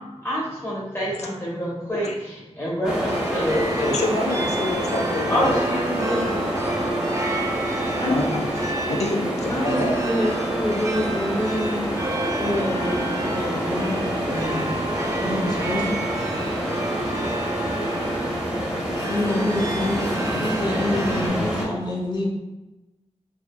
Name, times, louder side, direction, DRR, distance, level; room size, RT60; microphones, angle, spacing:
voice 1, 0.2-4.0 5.3-6.4, equal, 20° left, -6 dB, 1.2 m, -26 dB
sound 1, 2.8-21.7, equal, 5° right, 0.8 m, -27 dB
sound 2, 3.1-21.3, right 2 dB, 25° right, 0.4 m, -31 dB
voice 2, 3.9-5.6 8.0-8.5 8.9-10.0, left 2 dB, 70° left, 1 dB, 0.4 m, -27 dB
voice 3, 9.5-11.9 12.4-14.8 15.2-16.0 19.1-22.3, left 1 dB, 35° left, -4 dB, 0.7 m, -27 dB
2.6 x 2.4 x 2.2 m, 1.0 s
wide cardioid pair, 45°, 12 cm